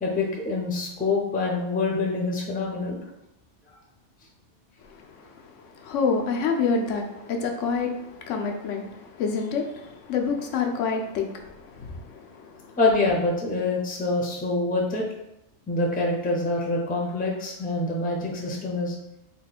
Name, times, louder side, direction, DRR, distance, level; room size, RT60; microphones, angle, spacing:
voice 1, 0.0-3.0 12.8-15.0 15.7-18.9, left 2 dB, 10° left, 0.4 m, -25 dB
voice 2, 4.8-12.8, left 5 dB, 90° left, 1.0 m, -28 dB
3.6 x 2.2 x 4.1 m
omnidirectional pair, 1.2 m